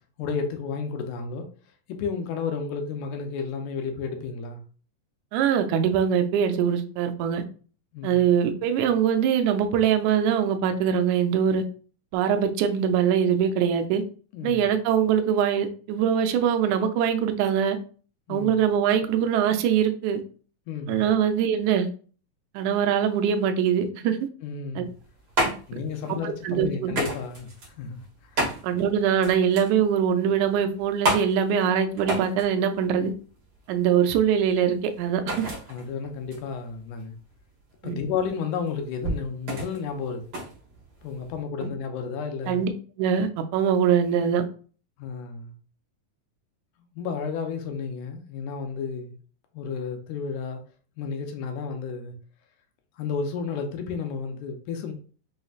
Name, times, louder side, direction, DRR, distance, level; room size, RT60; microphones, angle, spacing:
voice 1, 0.2-1.5 1.9-4.6 7.9-8.2 14.3-14.7 18.3-18.6 20.7-21.1 24.4-24.9 25.7-28.6 35.7-37.1 37.8-40.3 41.0-42.6 45.0-45.5 47.0-49.1 49.5-50.6 51.0-52.1 53.0-54.9, left 5 dB, 80° left, 1.8 m, -32 dB
voice 2, 5.3-7.4 8.0-11.6 12.1-14.0 14.4-17.8 18.3-20.2 20.9-21.9 22.5-24.2 24.8-24.9 26.2-26.9 28.6-33.1 33.7-35.5 37.8-38.0 41.6-41.7 42.5-42.7 43.0-44.5, right 8 dB, 80° right, 1.7 m, -23 dB
sound 1, 24.8-41.4, right 1 dB, 65° right, 1.0 m, -33 dB
5.5 x 3.1 x 2.4 m
omnidirectional pair, 4.0 m